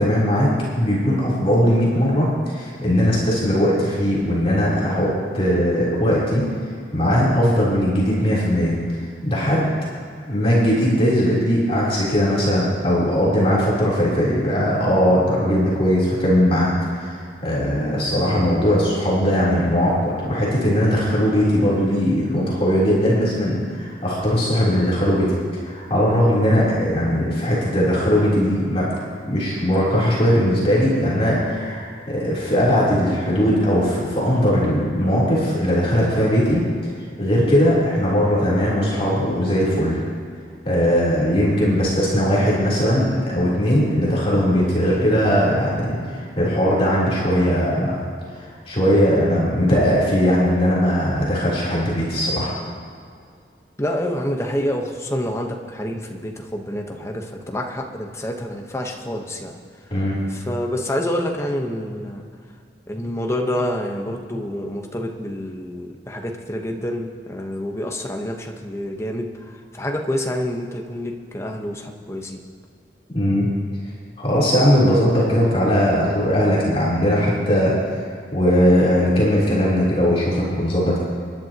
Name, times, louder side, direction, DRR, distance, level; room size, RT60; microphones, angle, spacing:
voice 1, 0.0-6.4 6.9-8.8 9.2-9.7 10.3-28.9 29.2-36.6 37.2-40.0 40.7-47.9 48.3-52.6 59.9-60.2 73.1-73.5 74.2-77.9 78.3-81.0, equal, 35° left, -7 dB, 3.7 m, -19 dB
voice 2, 53.8-59.6 60.3-62.3 62.9-72.4, left 1 dB, 15° left, 2 dB, 1.1 m, -27 dB
27.5 x 11.0 x 3.0 m, 2.2 s
head